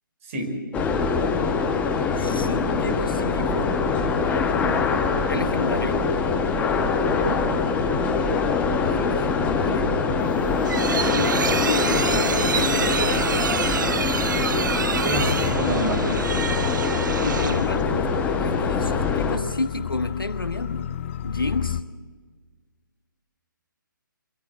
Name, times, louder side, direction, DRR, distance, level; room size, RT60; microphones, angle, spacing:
voice 1, 0.2-0.5 7.2-7.4 15.0-16.1, right 1 dB, 40° right, 5.0 m, -27 dB
sound 1, 0.7-19.4, left 4 dB, 15° left, 1.5 m, -23 dB
voice 2, 2.1-3.8 5.3-6.1 8.7-10.1 10.8-13.4 17.2-21.8, left 2 dB, 90° left, 1.3 m, -31 dB
sound 2, 10.3-17.8, right 6 dB, 60° right, 0.8 m, -27 dB
sound 3, 15.1-21.8, left 10 dB, 35° left, 0.6 m, -31 dB
24.5 x 16.5 x 8.2 m
figure-of-eight pair, 140°, 11 cm